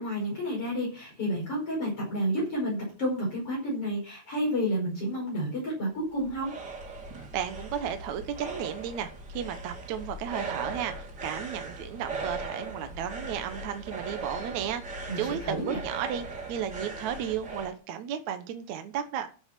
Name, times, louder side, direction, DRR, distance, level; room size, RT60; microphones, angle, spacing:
voice 1, 0.0-6.5 15.1-15.8, equal, 35° left, -2 dB, 5.9 m, -30 dB
sound 1, 5.9-17.7, right 3 dB, 30° right, 3.4 m, -39 dB
voice 2, 7.3-19.3, right 9 dB, 65° right, 8 dB, 1.9 m, -34 dB
12.5 x 7.4 x 6.0 m, 0.36 s
omnidirectional pair, 4.4 m